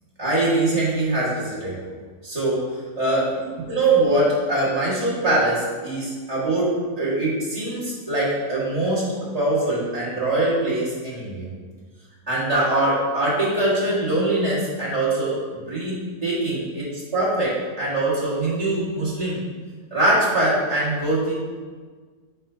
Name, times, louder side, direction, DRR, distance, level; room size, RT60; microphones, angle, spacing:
voice 1, 0.2-1.8 2.2-3.3 3.7-11.5 12.3-15.4 15.7-19.4 19.9-21.3, right 2 dB, 25° right, -9 dB, 1.8 m, -23 dB
7.3 x 5.6 x 2.7 m, 1.5 s
omnidirectional pair, 1.7 m